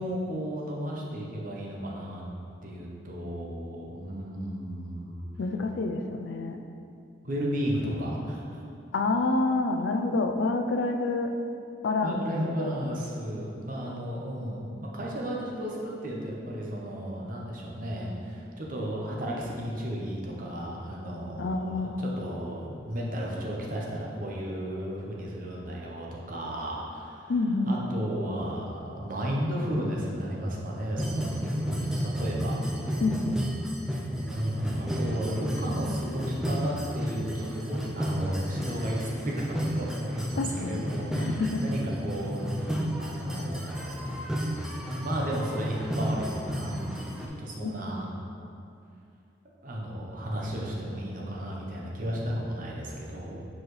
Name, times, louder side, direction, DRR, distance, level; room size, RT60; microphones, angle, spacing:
voice 1, 0.0-2.2 2.6-5.3 7.2-8.6 12.0-27.3 27.6-32.6 34.3-39.3 39.7-44.0 45.0-46.8 47.3-48.1 49.6-53.5, equal, 45° right, -3 dB, 0.8 m, -34 dB
voice 2, 5.4-6.6 8.9-11.3 11.8-12.2 12.4-12.7 21.4-22.1 27.3-27.7 33.0-33.4 35.9-36.0 40.4-40.9 41.1-41.6 47.6-47.7, left 3 dB, 65° left, 6 dB, 0.4 m, -28 dB
Holy In Paylem village (North Goa India), 31.0-47.3, equal, 5° right, 0.4 m, -32 dB
7.0 x 4.2 x 3.2 m, 2.5 s
head